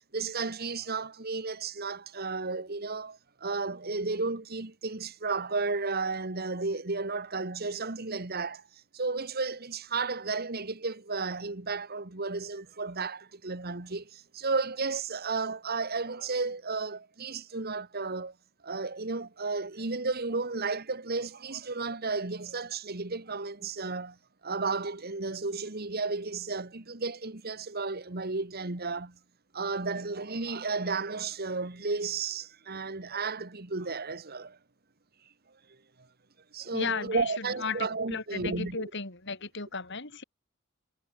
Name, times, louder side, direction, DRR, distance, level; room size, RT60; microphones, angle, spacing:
voice 1, 0.0-8.6 8.9-18.3 18.6-24.2 24.4-29.2 29.5-34.6 36.5-38.9, right 4 dB, 50° right, 1.9 m, -33 dB
voice 2, 36.7-40.2, left 4 dB, 60° left, 4.9 m, -35 dB
head